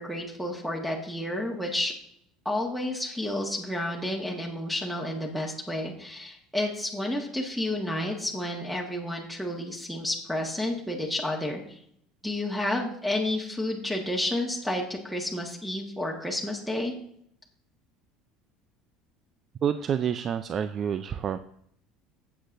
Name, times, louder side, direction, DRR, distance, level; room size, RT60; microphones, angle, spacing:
voice 1, 0.0-1.9 2.4-11.8 12.2-16.9, left 1 dB, ahead, 0 dB, 1.6 m, -31 dB
voice 2, 19.6-21.4, right 8 dB, 40° right, 11 dB, 0.4 m, -28 dB
14.5 x 8.0 x 2.6 m, 0.69 s
supercardioid pair, 105°, 0 cm